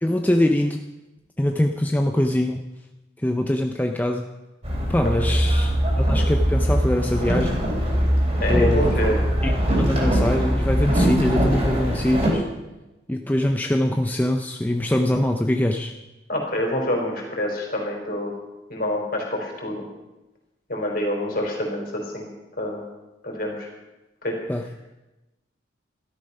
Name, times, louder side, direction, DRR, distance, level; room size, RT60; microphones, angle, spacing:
voice 1, 0.0-0.8 1.4-2.6 3.2-4.3 4.9-7.6 8.5-8.9 9.4-12.4 13.1-15.9 24.5-24.6, left 1 dB, 10° left, 4 dB, 0.5 m, -23 dB
Boat Water vehicle, 4.6-12.3, equal, 35° right, 3.5 m, -21 dB
voice 2, 8.4-9.2 16.3-18.3 18.7-19.8 20.7-22.3 22.6-22.8 23.2-23.7 24.2-24.4, left 1 dB, 50° left, 0 dB, 3.9 m, -26 dB
13.0 x 12.5 x 5.5 m, 1.0 s
head